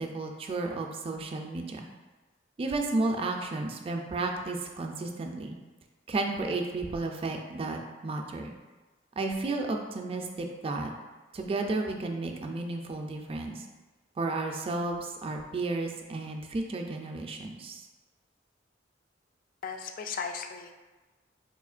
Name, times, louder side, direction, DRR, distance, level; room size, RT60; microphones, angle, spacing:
voice 1, 0.0-1.9 2.6-5.6 6.1-8.5 9.2-10.9 11.3-13.7 14.2-17.9, right 2 dB, 30° right, 2 dB, 0.3 m, -33 dB
voice 2, 19.6-20.7, left 6 dB, 50° left, 5 dB, 0.3 m, -36 dB
4.2 x 2.8 x 2.4 m, 1.2 s
head